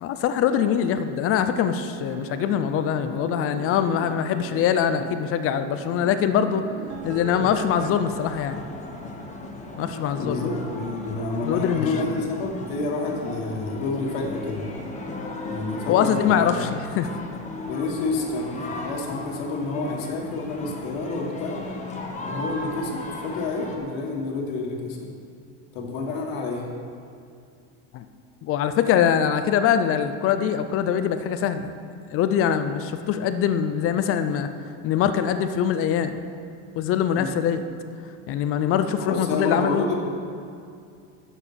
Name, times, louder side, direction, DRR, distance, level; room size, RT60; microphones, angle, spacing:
voice 1, 0.0-6.6 7.0-8.6 9.8-10.4 11.4-11.9 15.9-17.1 27.9-28.0 28.4-31.7 32.1-34.5 34.8-36.2 36.8-37.7 38.3-39.8, left 8 dB, 40° left, 10 dB, 0.4 m, -23 dB
sound 1, 0.5-8.9, right 8 dB, 45° right, 0.5 m, -40 dB
sound 2, 6.9-23.8, left 2 dB, 20° left, 1.0 m, -36 dB
voice 2, 10.2-14.7 15.5-16.6 17.7-21.6 22.3-25.1 25.7-26.6 37.1-37.3 39.0-40.0, left 3 dB, 75° left, 0 dB, 1.8 m, -29 dB
8.2 x 7.1 x 5.7 m, 2.4 s
supercardioid pair, 140°, 37 cm